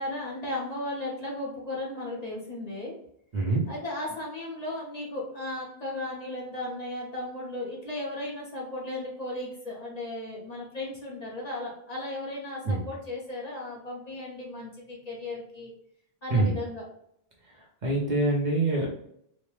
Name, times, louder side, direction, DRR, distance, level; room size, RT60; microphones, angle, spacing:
voice 1, 0.0-2.9 3.7-15.7 16.2-16.8, left 1 dB, 45° left, -3 dB, 0.8 m, -35 dB
voice 2, 3.3-3.7 12.6-12.8 16.3-16.5 17.8-18.9, right 2 dB, 50° right, -2 dB, 0.8 m, -25 dB
3.0 x 2.0 x 3.1 m, 0.71 s
omnidirectional pair, 1.1 m